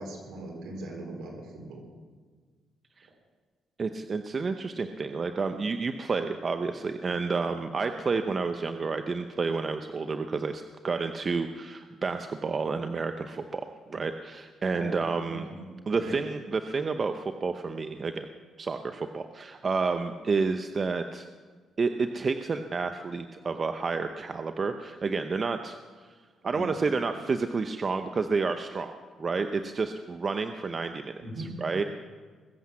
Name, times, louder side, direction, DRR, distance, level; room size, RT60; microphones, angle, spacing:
voice 1, 0.0-1.8 14.7-15.0 15.3-15.6 16.0-16.2 26.5-26.7 31.2-31.5, right 1 dB, 75° right, 0 dB, 4.6 m, -39 dB
voice 2, 3.8-15.5 15.9-18.3 18.6-21.3 21.8-25.8 26.4-28.9 29.2-31.8, right 4 dB, 40° right, 8 dB, 0.8 m, -30 dB
21.0 x 8.1 x 7.6 m, 1.5 s
cardioid pair, 90°, 0 cm